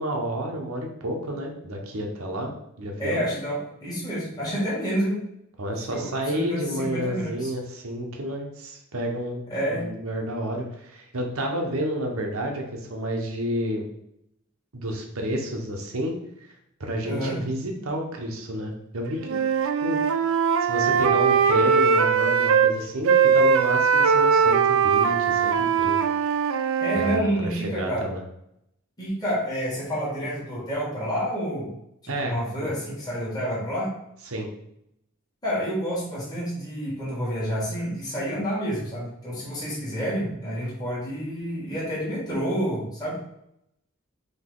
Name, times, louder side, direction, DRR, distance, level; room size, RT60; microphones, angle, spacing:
voice 1, 0.0-2.5 2.8-3.2 5.6-13.8 14.7-16.5 16.8-19.4 19.8-20.0 20.6-26.0 27.0-27.2 27.5-28.2 32.1-32.3 32.6-32.7 34.3-34.5, equal, 90° right, 1 dB, 0.9 m, -30 dB
voice 2, 3.0-5.2 5.9-7.5 9.5-9.9 17.0-17.4 26.8-28.1 29.0-31.7 32.0-33.9 35.4-43.2, equal, 20° left, -7 dB, 1.2 m, -29 dB
Wind instrument woodwind instrument, 19.2-22.7 23.0-27.3, right 6 dB, 65° right, 0.3 m, -20 dB
3.9 x 2.8 x 3.8 m, 0.77 s
head